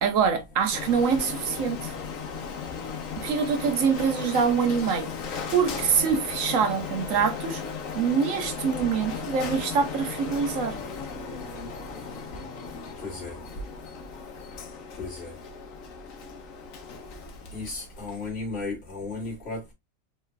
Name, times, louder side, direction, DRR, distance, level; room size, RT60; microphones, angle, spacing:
voice 1, 0.0-1.9 3.2-5.1 5.5-7.6 8.0-10.8, right 6 dB, 80° right, 1.2 m, -25 dB
Printer, 0.7-18.4, left 6 dB, 85° left, 1.2 m, -36 dB
voice 2, 13.0-13.4 15.0-15.4 17.5-19.7, left 3 dB, 50° left, 2.2 m, -35 dB
4.8 x 3.4 x 2.2 m
omnidirectional pair, 1.4 m